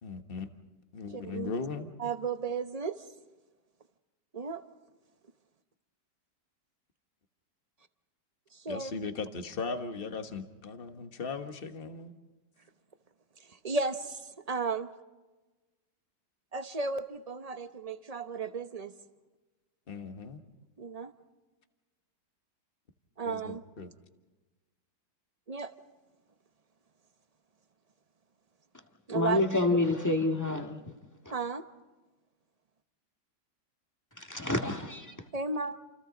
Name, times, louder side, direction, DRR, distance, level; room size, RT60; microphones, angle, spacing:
voice 1, 0.0-0.5 0.9-1.9 8.7-12.1 19.9-20.4 23.2-23.9, left 4 dB, 35° left, 7 dB, 1.5 m, -38 dB
voice 2, 1.1-1.5 2.0-3.0 4.3-4.6 8.5-8.9 13.4-14.9 16.5-18.9 20.8-21.1 23.2-23.6 25.5-25.7 29.1-29.4 31.3-31.6 35.3-35.8, right 4 dB, 35° right, 10 dB, 0.6 m, -34 dB
voice 3, 29.1-30.9 31.3-31.4 34.2-35.1, left 2 dB, 10° left, 3 dB, 1.8 m, -28 dB
29.0 x 29.0 x 3.9 m, 1.2 s
omnidirectional pair, 1.9 m